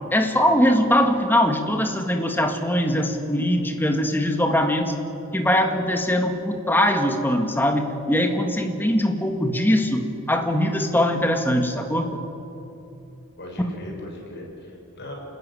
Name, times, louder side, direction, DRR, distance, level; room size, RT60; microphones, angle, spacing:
voice 1, 0.1-5.0 5.3-12.2, left 1 dB, 10° left, 4 dB, 1.8 m, -21 dB
voice 2, 13.4-15.1, left 1 dB, 50° left, -1 dB, 6.8 m, -38 dB
28.5 x 13.5 x 9.9 m, 2.8 s
head